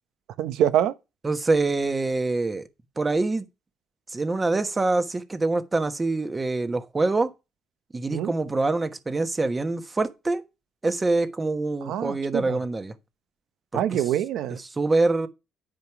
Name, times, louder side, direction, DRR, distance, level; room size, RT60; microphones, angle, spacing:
voice 1, 0.4-0.9 8.1-8.3 11.8-12.6 13.7-14.6, right 11 dB, 80° right, 0.9 m, -25 dB
voice 2, 1.2-2.7 3.0-3.4 4.1-7.3 7.9-10.4 10.8-12.9 13.7-14.0 14.5-15.3, right 3 dB, 20° right, 1.2 m, -25 dB
9.6 x 5.2 x 6.0 m
cardioid pair, 105°, 0 cm